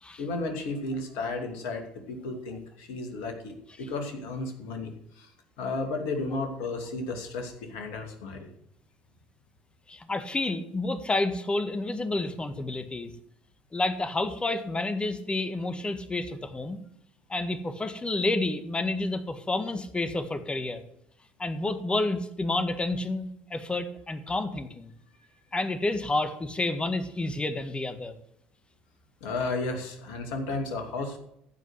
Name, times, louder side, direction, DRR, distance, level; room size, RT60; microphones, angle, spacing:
voice 1, 0.2-5.3 5.6-8.5 29.2-31.2, left 3 dB, 70° left, 4 dB, 2.6 m, -33 dB
voice 2, 9.9-13.1 13.7-16.8 17.3-20.8 21.4-24.9 25.5-28.2, left 2 dB, 20° left, 9 dB, 1.7 m, -30 dB
15.0 x 5.3 x 8.2 m, 0.74 s
hypercardioid pair, 60°, 5 cm